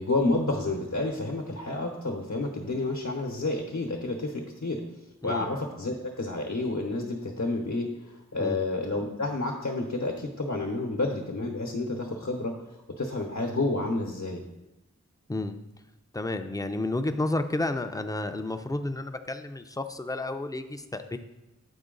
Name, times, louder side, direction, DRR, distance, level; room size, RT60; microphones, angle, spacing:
voice 1, 0.0-4.8 5.2-12.5 13.0-14.4, left 2 dB, 65° left, 1 dB, 0.9 m, -30 dB
voice 2, 15.3-15.6 16.1-21.2, left 2 dB, 10° left, 8 dB, 0.4 m, -31 dB
8.0 x 4.5 x 3.8 m, 0.97 s
wide cardioid pair, 60°, 31 cm